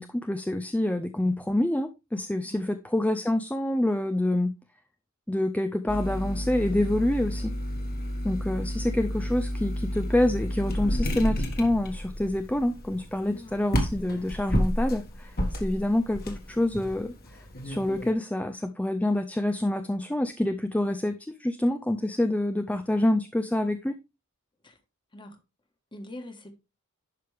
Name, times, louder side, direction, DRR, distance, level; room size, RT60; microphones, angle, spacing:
voice 1, 0.0-4.5 5.3-7.5 8.2-17.1 17.6-24.0, left 1 dB, 5° left, 0.4 m, -27 dB
voice 2, 2.4-2.8 8.3-8.5 13.3-13.7 24.6-24.7 25.1-25.4 25.9-26.5, left 1 dB, 20° left, 1.4 m, -43 dB
sound 1, 5.9-18.1, equal, 45° left, 1.7 m, -31 dB
11.0 x 5.1 x 3.3 m
head